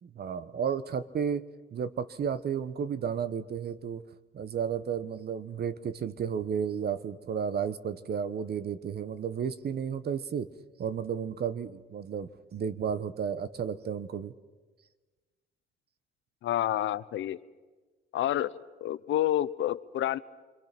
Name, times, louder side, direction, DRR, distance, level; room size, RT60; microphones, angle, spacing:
voice 1, 0.0-1.4 1.7-4.0 4.3-10.5 10.8-14.3, right 7 dB, 55° right, 14 dB, 1.2 m, -33 dB
voice 2, 16.4-17.4 18.1-18.5 18.8-20.2, left 12 dB, 75° left, 16 dB, 0.8 m, -28 dB
28.5 x 23.0 x 6.1 m, 1.3 s
cardioid pair, 90°, 20 cm